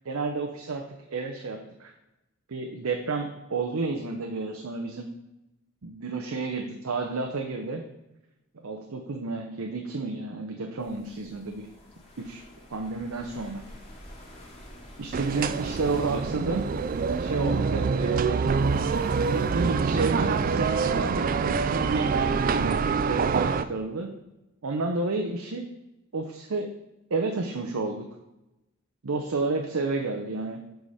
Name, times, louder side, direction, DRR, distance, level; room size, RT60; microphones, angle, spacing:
voice 1, 0.0-0.8 1.1-1.9 2.5-5.1 5.8-7.8 8.6-11.7 12.2-12.4 12.7-13.6 15.0-16.6 17.2-18.5 19.2-24.1 24.6-25.6 26.1-26.7 27.1-28.1 29.0-30.6, right 3 dB, 90° right, 4 dB, 0.7 m, -31 dB
sound 1, 10.8-20.5, left 1 dB, 30° left, 1.9 m, -49 dB
sound 2, 15.1-23.6, right 5 dB, 40° right, 0.3 m, -26 dB
8.1 x 5.0 x 4.1 m, 0.96 s
head